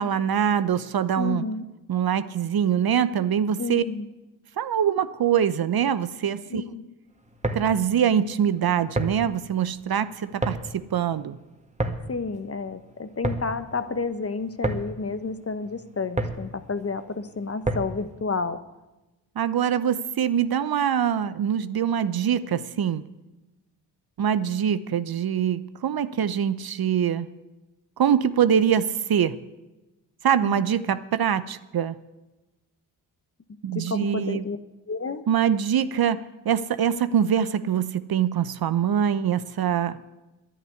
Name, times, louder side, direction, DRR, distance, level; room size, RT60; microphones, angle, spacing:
voice 1, 0.0-1.5 1.9-3.8 4.6-6.6 7.5-11.4 19.4-23.0 24.2-27.3 28.0-29.3 30.2-32.0 33.6-34.5 35.3-40.0, right 8 dB, 50° right, 13 dB, 0.9 m, -24 dB
voice 2, 1.2-1.6 3.6-4.1 6.5-6.9 12.1-18.6 30.4-30.6 33.7-34.6 34.9-35.2, left 4 dB, 30° left, 11 dB, 1.3 m, -30 dB
sound 1, 7.2-18.1, right 2 dB, 15° right, 2.1 m, -32 dB
11.0 x 10.0 x 9.6 m, 1.1 s
hypercardioid pair, 45°, 48 cm